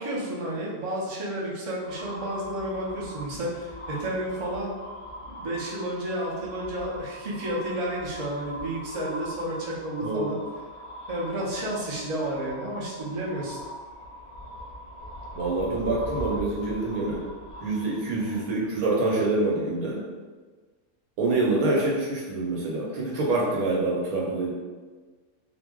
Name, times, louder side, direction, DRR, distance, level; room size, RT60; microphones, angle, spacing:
voice 1, 0.0-4.7 5.2-10.4 11.1-13.6, right 1 dB, 50° right, -5 dB, 0.4 m, -31 dB
sound 1, 1.8-18.9, equal, 60° left, 0.3 m, -41 dB
voice 2, 15.3-17.3 17.6-20.0 21.2-24.5, right 2 dB, 80° right, -3 dB, 1.2 m, -26 dB
2.5 x 2.0 x 3.5 m, 1.4 s
omnidirectional pair, 1.5 m